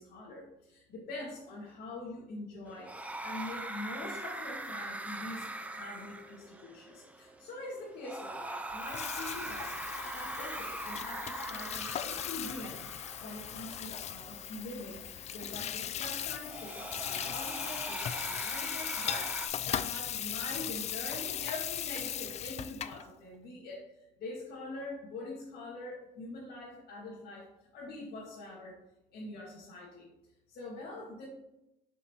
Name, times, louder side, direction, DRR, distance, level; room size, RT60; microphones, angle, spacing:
voice 1, 0.0-28.8 29.1-30.1 30.5-31.3, left 2 dB, 70° left, -5 dB, 1.8 m, -44 dB
sound 1, 2.7-19.5, right 2 dB, 10° right, 0.6 m, -42 dB
Water tap faucet / Sink (filling or washing), 8.7-23.0, left 10 dB, 40° left, 0.4 m, -38 dB
7.5 x 5.7 x 2.9 m, 0.89 s
cardioid pair, 110°, 17 cm